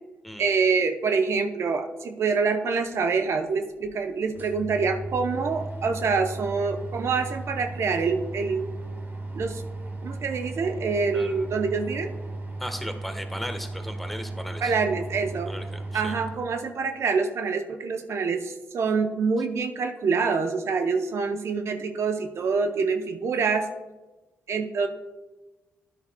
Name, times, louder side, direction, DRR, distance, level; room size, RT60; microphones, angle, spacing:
voice 1, 0.4-8.7 9.3-9.6 10.0-12.1 14.6-15.5 15.9-23.7 24.5-24.9, right 5 dB, 65° right, 6 dB, 0.7 m, -26 dB
sound 1, 3.2-3.3 3.8-3.9 4.2-16.4, right 2 dB, 40° right, 1.5 m, -36 dB
voice 2, 12.6-14.7 15.5-16.2, equal, ahead, 6 dB, 1.2 m, -36 dB
13.0 x 9.8 x 2.2 m, 1.2 s
cardioid pair, 70°, 5 cm